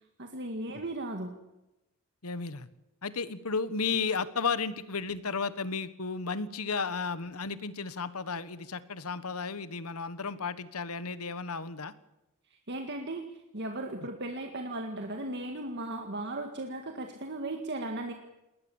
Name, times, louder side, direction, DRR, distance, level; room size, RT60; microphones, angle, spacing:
voice 1, 0.2-1.3 12.7-13.3 13.5-18.1, right 2 dB, 50° right, 4 dB, 1.9 m, -36 dB
voice 2, 2.2-2.7 3.0-11.9, left 5 dB, 90° left, 14 dB, 1.4 m, -33 dB
20.0 x 19.5 x 7.2 m, 0.96 s
head